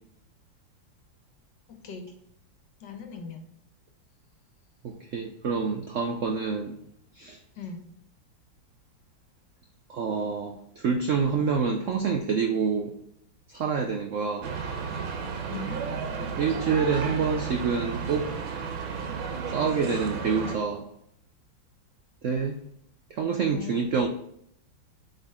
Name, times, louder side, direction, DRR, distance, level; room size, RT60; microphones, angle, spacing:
voice 1, 1.7-2.1 2.8-3.5 7.5-7.8 15.5-15.8 23.5-23.8, left 4 dB, 70° left, 4 dB, 1.7 m, -39 dB
voice 2, 4.8-6.8 7.2-7.4 9.9-12.9 13.5-14.5 16.4-18.3 19.5-20.9 22.2-22.6 23.1-24.1, right 5 dB, 70° right, 4 dB, 0.7 m, -27 dB
sound 1, 14.4-20.6, right 5 dB, 90° right, 1.7 m, -33 dB
8.0 x 4.0 x 3.6 m, 0.71 s
omnidirectional pair, 2.1 m